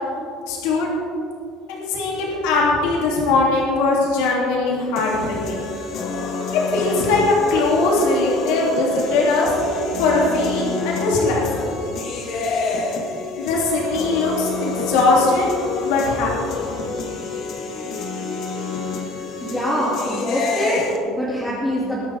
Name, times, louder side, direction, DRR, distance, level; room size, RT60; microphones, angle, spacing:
voice 1, 0.5-0.9 1.7-5.7 6.7-9.5 10.0-11.4 13.4-15.5 15.8-16.6, left 3 dB, 85° left, -3 dB, 3.1 m, -20 dB
sound 1, 5.0-21.0, left 4 dB, 45° left, 1.7 m, -28 dB
voice 2, 19.4-22.0, equal, 5° left, -9 dB, 2.5 m, -24 dB
21.5 x 11.5 x 3.7 m, 2.5 s
cardioid pair, 170°, 0 cm